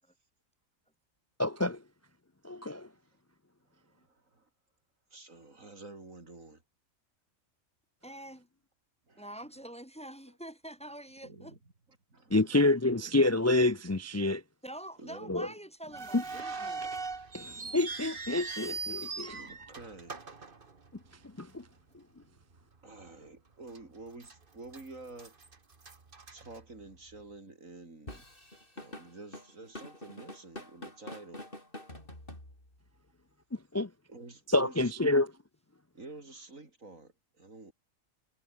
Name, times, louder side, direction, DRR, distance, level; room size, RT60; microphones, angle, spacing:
voice 1, 1.4-1.8 2.4-2.9 12.3-14.4 15.3-15.5 16.1-16.2 17.3-19.4 21.4-21.6 33.7-33.9 34.5-35.3, left 2 dB, 25° left, 0.3 m, -27 dB
voice 2, 3.7-4.5 5.1-6.6 9.1-9.3 11.2-11.6 12.1-13.3 15.0-15.5 18.9-20.2 22.8-25.4 26.3-28.2 28.8-31.5 34.1-35.2 35.9-37.7, right 2 dB, 85° right, 4.7 m, -49 dB
voice 3, 8.0-8.5 9.2-11.6 14.6-17.0, right 1 dB, 5° left, 2.2 m, -46 dB
sound 1, 15.9-21.2 21.5-21.6 22.4-22.6 23.0-23.1 23.7-24.3 24.7-27.2, right 4 dB, 40° right, 1.9 m, -41 dB
Drum kit / Drum, 28.1-32.9, left 1 dB, 40° left, 8.4 m, -46 dB
omnidirectional pair, 1.4 m